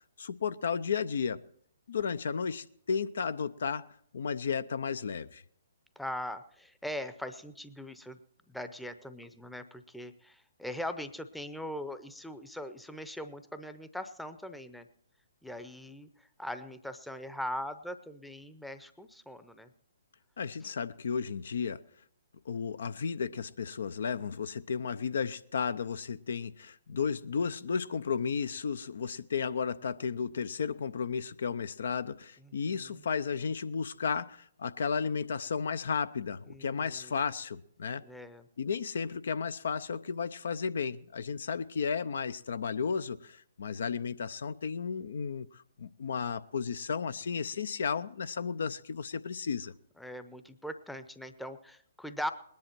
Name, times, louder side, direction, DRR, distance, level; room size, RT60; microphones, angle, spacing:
voice 1, 0.2-1.4 1.9-3.9 4.1-5.4 20.4-21.8 22.5-38.0 38.6-49.7, left 6 dB, 60° left, 0.5 m, -33 dB
voice 2, 6.0-8.2 8.5-14.9 15.4-16.1 16.4-19.7 32.4-33.0 36.5-37.2 38.0-38.4 50.0-52.3, left 1 dB, ahead, 0.7 m, -41 dB
20.0 x 10.5 x 4.5 m
figure-of-eight pair, 125°, 0 cm